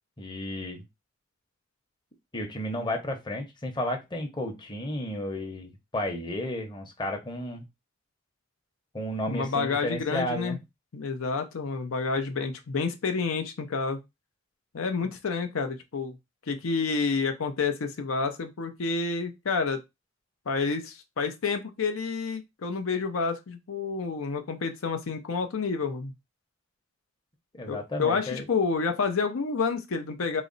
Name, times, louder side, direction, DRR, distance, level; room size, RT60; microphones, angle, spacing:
voice 1, 0.2-0.8 2.3-7.6 8.9-10.6 27.5-28.5, left 1 dB, 20° left, 0.8 m, -33 dB
voice 2, 9.3-10.6 10.9-14.0 14.7-16.2 16.5-19.8 20.5-26.1 27.7-30.4, left 4 dB, 80° left, 0.6 m, -29 dB
4.0 x 2.1 x 3.8 m
head